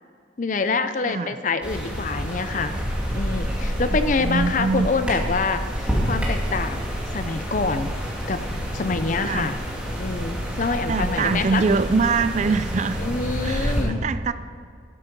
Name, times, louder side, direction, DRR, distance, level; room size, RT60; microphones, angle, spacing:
voice 1, 0.4-2.8 3.1-6.8 7.1-9.6 10.0-11.6 13.0-14.0, left 4 dB, 45° left, 10 dB, 0.6 m, -26 dB
voice 2, 1.0-1.4 4.2-4.9 9.2-9.5 10.6-13.0 13.4-14.3, right 4 dB, 40° right, 13 dB, 0.4 m, -24 dB
sound 1, 1.6-13.8, equal, 5° right, 2.3 m, -28 dB
sound 2, 1.9-12.6, right 1 dB, 85° right, 2.8 m, -43 dB
12.5 x 8.4 x 5.3 m, 2.2 s
head